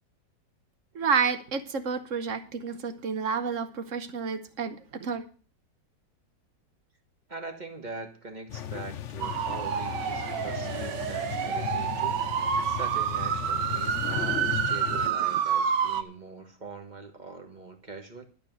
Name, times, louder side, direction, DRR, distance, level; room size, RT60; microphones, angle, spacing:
voice 1, 0.9-5.2, right 6 dB, 50° right, 11 dB, 1.2 m, -30 dB
voice 2, 7.3-18.3, right 3 dB, 25° right, 5 dB, 1.5 m, -42 dB
sound 1, 8.5-15.1, left 10 dB, 60° left, 0.8 m, -36 dB
sound 2, 9.2-16.0, right 8 dB, 75° right, 1.5 m, -28 dB
11.5 x 5.7 x 9.1 m, 0.39 s
omnidirectional pair, 1.9 m